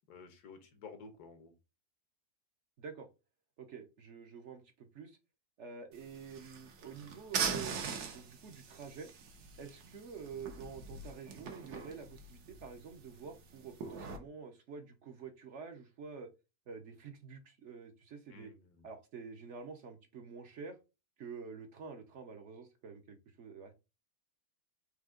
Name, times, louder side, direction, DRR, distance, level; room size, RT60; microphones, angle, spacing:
voice 1, 0.1-1.5 18.3-18.9, left 4 dB, 80° left, 1.5 m, -52 dB
voice 2, 2.8-3.1 3.6-5.2 5.6-9.1 9.6-16.3 16.7-18.5 18.8-20.8 21.2-23.7, right 5 dB, 60° right, 0.9 m, -48 dB
sound 1, 5.9-14.2, right 6 dB, 80° right, 1.4 m, -42 dB
4.9 x 2.8 x 3.7 m
omnidirectional pair, 1.6 m